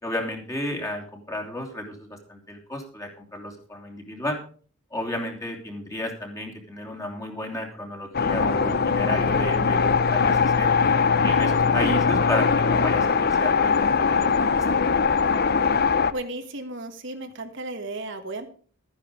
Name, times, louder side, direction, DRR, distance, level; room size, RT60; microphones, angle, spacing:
voice 1, 0.0-4.4 4.9-10.7 11.2-14.6, left 1 dB, 15° left, 1 dB, 2.9 m, -33 dB
sound 1, 8.1-16.1, left 5 dB, 45° left, 0.7 m, -21 dB
voice 2, 16.1-18.5, right 2 dB, 55° right, 6 dB, 1.5 m, -34 dB
13.5 x 10.0 x 5.1 m, 0.42 s
head